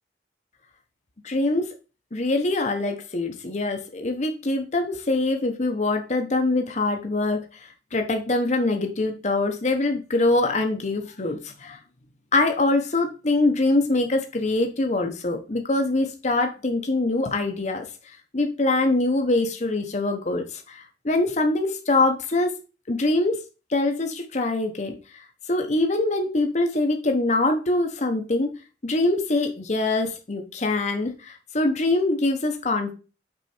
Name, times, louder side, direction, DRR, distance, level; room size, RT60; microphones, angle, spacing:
voice 1, 1.2-1.7 2.1-7.4 7.9-11.8 12.3-17.9 18.3-22.5 22.9-23.4 23.7-24.9 25.5-28.5 28.8-32.9, left 2 dB, 40° left, 5 dB, 0.9 m, -24 dB
6.3 x 4.5 x 4.3 m, 0.32 s
head